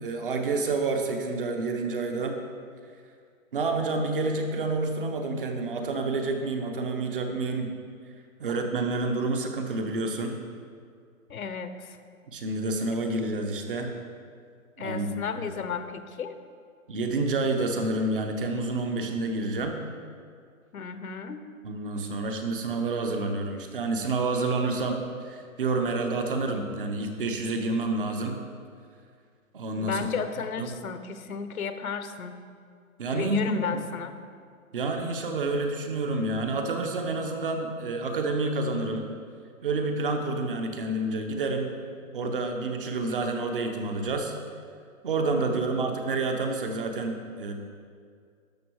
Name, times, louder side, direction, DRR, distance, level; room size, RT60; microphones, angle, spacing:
voice 1, 0.0-2.4 3.5-7.7 8.4-10.3 12.3-13.9 14.8-15.1 16.9-19.8 21.6-28.4 29.5-30.0 30.6-30.7 33.0-33.8 34.7-39.1 39.6-41.8 42.1-44.3 45.0-47.5, right 3 dB, 40° right, 4 dB, 1.0 m, -28 dB
voice 2, 11.3-12.0 14.8-16.3 20.7-21.4 29.8-32.4 33.1-34.1, left 6 dB, 80° left, 10 dB, 1.0 m, -33 dB
12.0 x 6.3 x 4.7 m, 2.2 s
hypercardioid pair, 165°, 42 cm